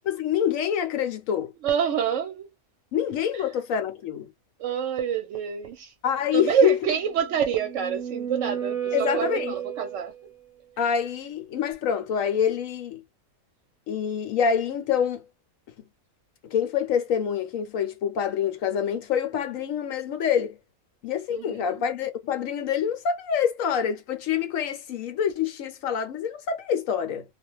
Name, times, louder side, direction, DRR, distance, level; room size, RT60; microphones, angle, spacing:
voice 1, 0.0-1.5 2.9-4.3 6.0-6.8 8.9-9.5 10.8-13.0 13.9-15.3 16.5-20.6 21.0-27.2, left 8 dB, 70° left, 1.0 m, -26 dB
voice 2, 1.6-2.5 3.3-3.4 4.6-5.9 6.3-10.3 21.3-21.8, right 8 dB, 65° right, 0.8 m, -27 dB
sound 1, 7.2-10.3, right 9 dB, 10° left, 0.5 m, -32 dB
2.4 x 2.2 x 3.0 m
omnidirectional pair, 1.5 m